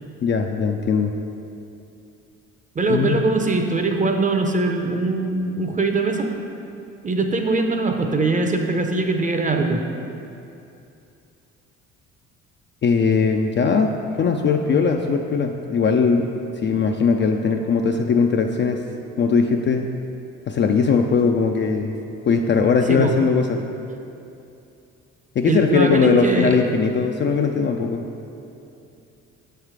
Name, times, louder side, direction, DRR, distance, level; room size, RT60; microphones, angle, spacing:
voice 1, 0.2-1.1 2.9-3.2 12.8-13.9 14.2-16.3 16.6-18.8 19.2-19.9 20.5-22.0 22.3-23.6 25.4-28.1, left 5 dB, 35° left, 3 dB, 0.4 m, -19 dB
voice 2, 2.8-6.3 7.0-9.8 16.7-16.8 22.9-23.1 25.4-26.6, right 3 dB, 20° right, 4 dB, 0.6 m, -22 dB
7.0 x 3.3 x 4.8 m, 2.7 s
hypercardioid pair, 60°, 36 cm